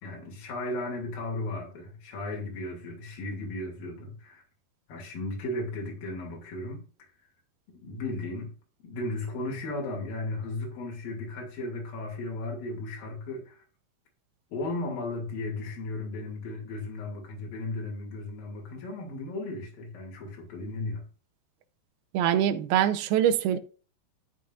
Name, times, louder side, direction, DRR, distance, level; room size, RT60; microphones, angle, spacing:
voice 1, 0.0-4.4 4.9-6.8 7.8-8.5 8.8-13.6 14.5-21.1, left 2 dB, 65° left, 4.2 m, -35 dB
voice 2, 22.1-23.6, right 10 dB, 80° right, 2.7 m, -24 dB
12.0 x 9.9 x 2.5 m
omnidirectional pair, 4.4 m